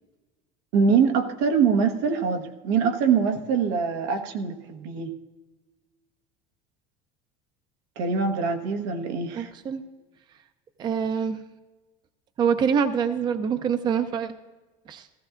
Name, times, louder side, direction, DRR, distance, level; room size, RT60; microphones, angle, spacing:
voice 1, 0.7-5.1 8.0-9.5, right 6 dB, 80° right, 7 dB, 1.2 m, -23 dB
voice 2, 9.3-9.8 10.8-11.4 12.4-14.3 14.9-15.1, right 7 dB, 30° right, 10 dB, 0.5 m, -25 dB
16.0 x 14.5 x 2.5 m, 1.2 s
cardioid pair, 145°, 15 cm